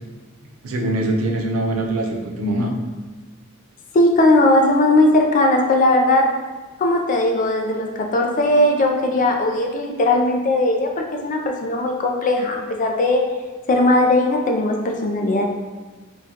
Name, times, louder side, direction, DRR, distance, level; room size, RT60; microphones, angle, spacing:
voice 1, 0.6-2.7, right 1 dB, 90° right, 1 dB, 0.5 m, -23 dB
voice 2, 3.9-6.4 6.8-13.2 13.7-15.4, left 1 dB, 40° left, 2 dB, 0.4 m, -18 dB
3.6 x 2.2 x 2.8 m, 1.3 s
head